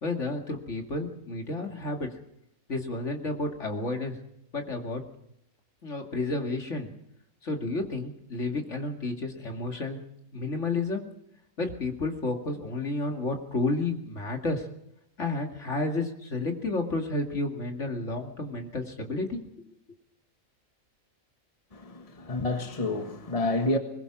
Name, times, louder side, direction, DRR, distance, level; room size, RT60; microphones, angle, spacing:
voice 1, 0.0-2.1 2.7-4.2 4.5-5.0 5.8-6.9 7.4-10.0 10.3-11.0 11.6-14.7 15.2-19.7, left 2 dB, 55° left, 2.6 m, -31 dB
voice 2, 21.7-23.8, left 2 dB, 25° left, 1.6 m, -29 dB
21.5 x 21.0 x 6.0 m
omnidirectional pair, 1.5 m